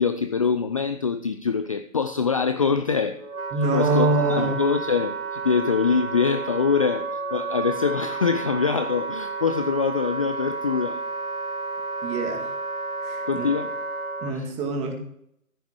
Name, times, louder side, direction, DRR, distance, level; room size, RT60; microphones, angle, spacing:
voice 1, 0.0-3.2 3.7-11.0 13.3-13.7 14.3-14.5, left 5 dB, 25° left, 9 dB, 0.5 m, -24 dB
Wind instrument woodwind instrument, 2.7-14.3, right 4 dB, 80° right, 2.4 m, -31 dB
voice 2, 3.5-4.6 12.0-12.5 13.0-13.5 14.2-14.9, right 2 dB, 15° right, 4 dB, 2.2 m, -24 dB
14.5 x 9.3 x 4.7 m, 0.69 s
figure-of-eight pair, 135°, 42 cm